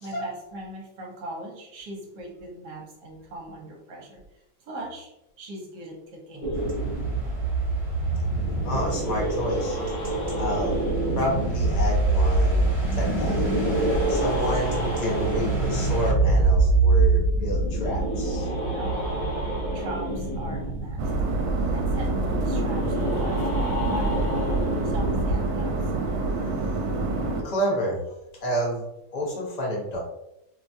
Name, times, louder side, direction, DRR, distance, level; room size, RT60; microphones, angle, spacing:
voice 1, 0.0-5.1 5.4-6.6 18.6-19.3 19.7-21.1 21.7-24.4 24.7-25.9, right 1 dB, 60° right, -1 dB, 1.3 m, -40 dB
sound 1, 6.4-25.3, right 2 dB, 45° left, 0.8 m, -25 dB
sound 2, 6.5-16.1, right 2 dB, 35° right, 1.3 m, -38 dB
voice 2, 8.4-10.0 10.4-10.8 11.2-13.5 14.1-18.5 26.5-27.2 27.4-28.8 29.1-30.0, equal, 75° left, -3 dB, 0.3 m, -30 dB
sound 3, 21.0-27.4, right 2 dB, 80° right, 1.3 m, -27 dB
4.9 x 2.2 x 2.6 m, 0.85 s
omnidirectional pair, 2.2 m